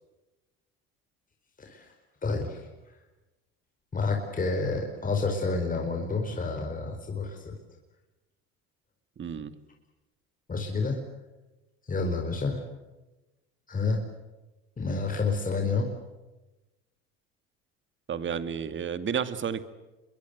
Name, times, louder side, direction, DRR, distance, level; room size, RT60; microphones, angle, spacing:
voice 1, 1.6-1.9 2.2-2.7 3.9-7.5 10.5-11.0 11.8-12.6 13.7-14.0 14.8-15.9, left 3 dB, 25° left, 3 dB, 4.8 m, -29 dB
voice 2, 9.2-9.5 18.1-19.6, right 7 dB, 40° right, 12 dB, 2.3 m, -31 dB
26.5 x 22.0 x 8.1 m, 1.1 s
supercardioid pair, 85°, 31 cm